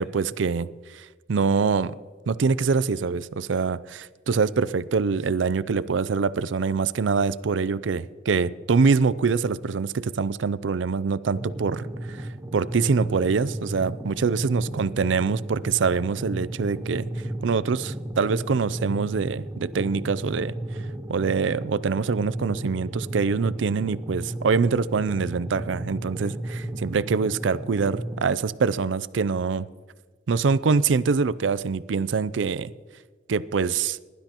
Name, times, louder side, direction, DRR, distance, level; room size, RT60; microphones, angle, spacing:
voice 1, 0.0-1.9 2.3-17.1 17.4-20.5 21.1-29.7 30.3-32.7 33.3-34.0, right 5 dB, 80° right, 17 dB, 0.5 m, -24 dB
sound 1, 11.3-28.3, right 1 dB, 15° right, 0.8 m, -34 dB
21.0 x 12.0 x 3.0 m, 1.5 s
head